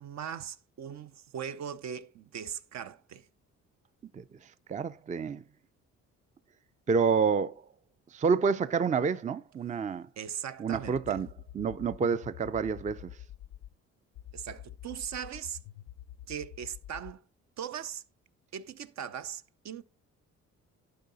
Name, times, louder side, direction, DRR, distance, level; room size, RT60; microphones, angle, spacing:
voice 1, 0.0-3.3 10.2-11.2 14.3-15.6 16.3-17.2 17.6-18.0 18.5-19.8, right 8 dB, 65° right, 0.7 m, -39 dB
voice 2, 4.7-5.4 6.9-7.6 8.1-10.1 10.6-11.3 11.5-13.1, right 5 dB, 25° right, 0.4 m, -28 dB
sound 1, 10.7-13.7 14.1-17.2, left 12 dB, 80° left, 0.6 m, -47 dB
11.5 x 4.8 x 4.0 m
cardioid pair, 90°, 30 cm